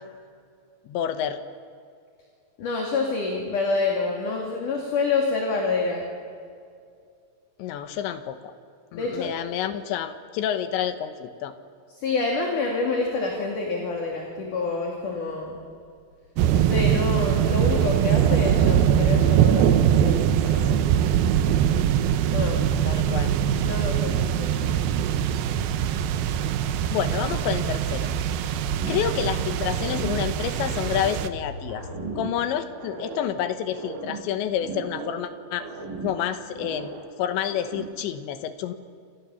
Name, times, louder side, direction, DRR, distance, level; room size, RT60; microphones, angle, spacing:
voice 1, 0.9-1.4 7.6-8.5 8.9-11.5 22.9-23.4 26.9-28.1 28.4-28.6 28.9-31.9 32.2-35.7 36.0-38.7, left 9 dB, 75° left, 9 dB, 3.2 m, -29 dB
voice 2, 2.6-6.1 8.9-9.3 12.0-15.6 16.5-21.1 22.3-23.2 23.6-24.7, left 3 dB, 50° left, 0 dB, 3.5 m, -28 dB
sound 1, 16.4-31.3, right 10 dB, 85° right, 2.1 m, -22 dB
sound 2, 18.6-32.1, left 1 dB, 30° left, 2.7 m, -40 dB
sound 3, 28.7-29.4 29.7-31.4 31.7-33.4 33.7-35.3 35.5-37.1 37.4-38.1, right 4 dB, 55° right, 4.3 m, -37 dB
28.5 x 27.0 x 7.1 m, 2.3 s
omnidirectional pair, 5.6 m